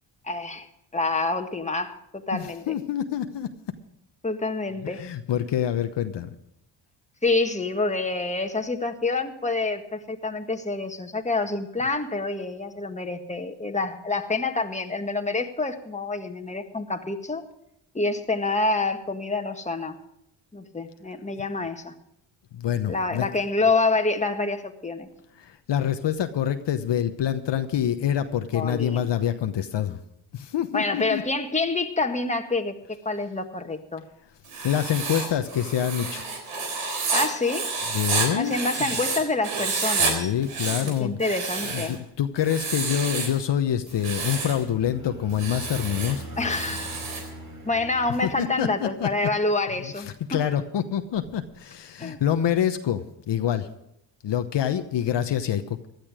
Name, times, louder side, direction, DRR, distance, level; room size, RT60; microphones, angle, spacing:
voice 1, 0.2-0.7 0.9-2.8 4.2-5.0 7.2-17.4 17.9-20.0 20.5-21.9 22.9-25.1 28.5-29.0 30.7-34.0 37.1-37.7 38.3-40.3 40.7-42.0 46.4-46.9 47.6-50.4 52.0-52.2, left 3 dB, 15° left, 5 dB, 1.7 m, -27 dB
voice 2, 2.3-3.5 5.0-6.3 22.5-23.3 25.4-30.0 30.3-31.2 34.6-36.3 37.9-38.5 38.8-38.9 40.0-41.2 41.7-46.8 47.0-47.3 48.2-49.1 49.8-50.0 50.3-53.7 54.2-55.9, left 10 dB, 60° left, 8 dB, 1.1 m, -26 dB
Writing, 34.4-39.2 39.4-40.1 40.4-42.0 42.4-43.4 43.9-44.6 45.3-47.3, right 4 dB, 85° right, 3.9 m, -29 dB
sound 1, 43.6-49.3, right 1 dB, 45° right, 3.6 m, -42 dB
15.5 x 12.0 x 5.0 m, 0.79 s
supercardioid pair, 60°, 48 cm